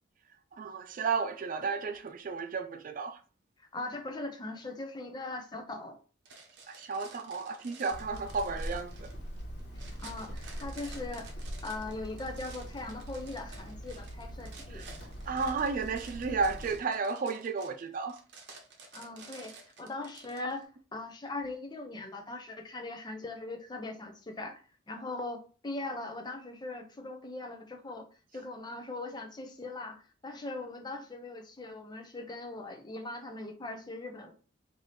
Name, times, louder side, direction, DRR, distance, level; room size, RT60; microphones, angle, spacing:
voice 1, 0.5-3.2 6.7-9.1 14.7-15.0 15.2-18.2, right 4 dB, 45° right, 0.4 m, -33 dB
voice 2, 3.6-6.0 9.8-11.3 11.6-14.8 18.9-24.6 24.9-28.1 28.3-34.3, left 2 dB, 20° left, 0.5 m, -40 dB
sound 1, 6.2-20.6, right 4 dB, 60° right, 0.9 m, -52 dB
Hammer, 7.9-16.8, equal, 65° left, 1.2 m, -43 dB
3.3 x 2.7 x 4.0 m
head